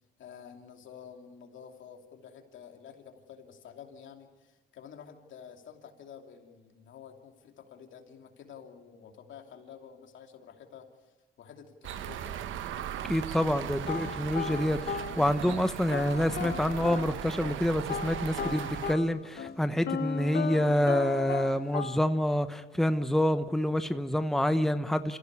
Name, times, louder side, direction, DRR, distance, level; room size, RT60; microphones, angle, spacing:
voice 1, 0.2-10.9 11.4-12.5, left 7 dB, 75° left, 4 dB, 2.8 m, -50 dB
sound 1, 11.8-18.9, right 10 dB, 80° right, 1.0 m, -38 dB
voice 2, 13.1-25.2, equal, ahead, 9 dB, 1.0 m, -27 dB
sound 2, 13.9-15.6 15.9-17.6 17.9-22.0, left 7 dB, 55° left, 1.1 m, -36 dB
26.5 x 15.5 x 9.6 m, 1.2 s
cardioid pair, 90°, 20 cm